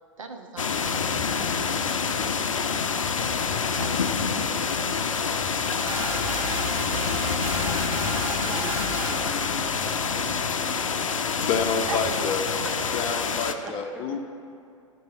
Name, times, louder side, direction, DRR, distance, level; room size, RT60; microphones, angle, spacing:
voice 1, 0.2-2.1 3.8-4.6 11.9-12.0 13.4-13.5, right 4 dB, 75° right, 4 dB, 0.9 m, -41 dB
sound 1, 0.6-13.5, left 5 dB, 80° left, 0.5 m, -27 dB
sound 2, 5.8-9.3, right 1 dB, 55° right, 1.8 m, -32 dB
voice 2, 8.4-11.5 12.1-12.9 13.6-14.0, equal, 5° right, 1 dB, 0.9 m, -42 dB
voice 3, 11.5-12.4 12.9-14.2, left 5 dB, 35° left, 5 dB, 0.7 m, -28 dB
13.5 x 4.6 x 4.2 m, 2.5 s
figure-of-eight pair, 100°, 17 cm